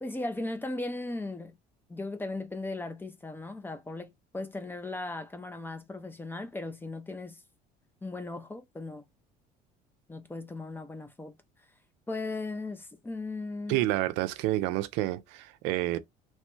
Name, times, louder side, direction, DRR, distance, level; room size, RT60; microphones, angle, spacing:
voice 1, 0.0-1.5 1.9-7.4 8.0-9.0 10.1-11.4 12.1-13.8, left 2 dB, 10° left, 0.5 m, -37 dB
voice 2, 13.7-16.0, right 16 dB, 75° right, 0.4 m, -29 dB
3.0 x 2.1 x 3.1 m
supercardioid pair, 105°, 18 cm